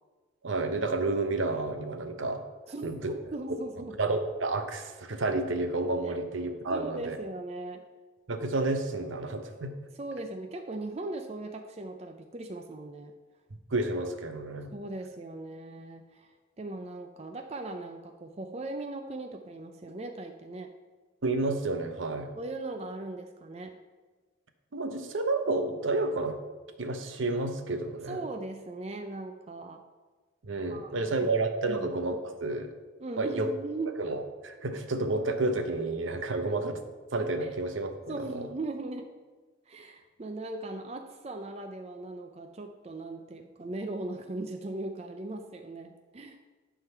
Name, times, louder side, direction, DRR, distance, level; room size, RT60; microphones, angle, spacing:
voice 1, 0.4-2.4 2.8-3.1 3.5-3.6 4.0-7.2 8.3-9.7 13.7-14.7 21.2-22.3 24.7-26.4 26.8-28.2 30.4-32.7 33.2-33.5 34.0-36.7 37.1-38.5, right 2 dB, 75° right, 7 dB, 0.8 m, -30 dB
voice 2, 2.7-4.0 6.1-6.2 6.7-7.8 10.0-13.1 14.7-20.7 22.3-23.8 28.1-29.8 30.7-31.3 31.7-31.9 33.0-34.0 37.4-37.5 38.1-39.1 39.7-46.4, right 2 dB, 30° right, 5 dB, 0.5 m, -39 dB
11.0 x 3.8 x 5.7 m, 1.3 s
head